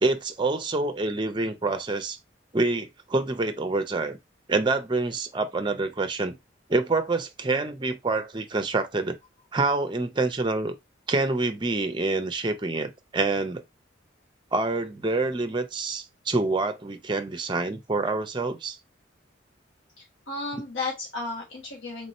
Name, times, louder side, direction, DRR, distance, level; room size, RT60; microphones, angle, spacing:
voice 1, 0.0-2.2 2.5-4.2 4.5-6.4 6.7-9.2 9.5-10.7 11.1-13.6 14.5-18.8 20.5-20.6, right 3 dB, 25° right, 0.5 m, -26 dB
voice 2, 20.0-22.1, left 3 dB, 75° left, 1.1 m, -34 dB
3.5 x 2.7 x 4.1 m
head